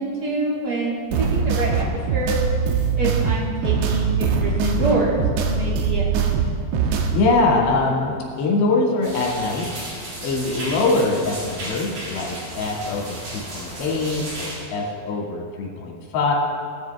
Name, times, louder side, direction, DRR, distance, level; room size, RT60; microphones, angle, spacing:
voice 1, 0.0-1.8 2.1-2.4 3.0-6.3, right 2 dB, 35° right, -4 dB, 1.7 m, -26 dB
sound 1, 1.1-7.3, right 6 dB, 85° right, 3.2 m, -22 dB
voice 2, 6.8-9.7 10.2-16.3, left 3 dB, 80° left, -2 dB, 4.3 m, -23 dB
sound 2, 9.0-14.6, right 1 dB, 55° right, 5.6 m, -34 dB
18.5 x 12.5 x 3.5 m, 2.2 s
omnidirectional pair, 4.9 m